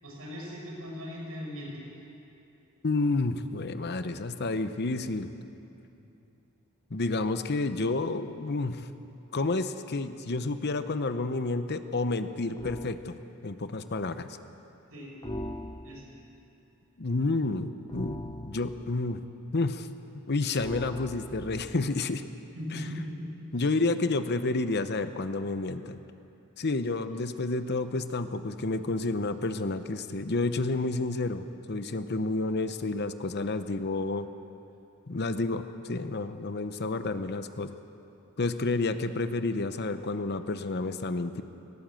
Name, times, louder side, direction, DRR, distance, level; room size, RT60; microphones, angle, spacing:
voice 1, 0.0-1.9 14.9-15.1 15.8-16.0 22.5-23.7 27.1-27.3, equal, 70° right, -3 dB, 6.5 m, -39 dB
voice 2, 2.8-5.3 6.9-8.9 9.3-14.3 17.0-19.2 19.5-19.9 20.3-22.2 22.7-22.9 23.5-26.0 26.6-34.3 35.1-37.7 38.4-41.4, left 3 dB, 50° left, 10 dB, 0.8 m, -30 dB
sound 1, 12.6-13.0 15.2-16.2 17.9-19.0 20.5-21.9, left 1 dB, 20° left, 0.8 m, -40 dB
19.0 x 18.5 x 7.7 m, 2.8 s
head